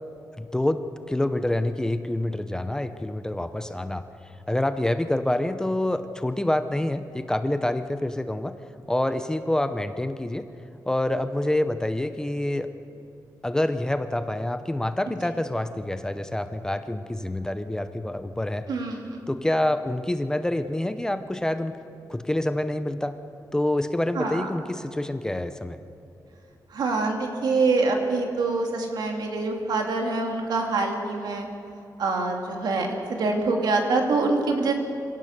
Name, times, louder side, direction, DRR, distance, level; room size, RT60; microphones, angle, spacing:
voice 1, 0.4-4.0 4.5-8.5 8.9-10.5 10.9-12.7 13.4-18.7 19.3-21.8 22.1-23.2 23.5-25.8, left 1 dB, 10° left, 9 dB, 0.6 m, -27 dB
voice 2, 18.7-19.2 24.1-24.5 26.7-31.5 32.0-34.7, right 3 dB, 80° right, 2 dB, 2.8 m, -25 dB
26.0 x 17.0 x 6.6 m, 2.7 s
wide cardioid pair, 165°, 7 cm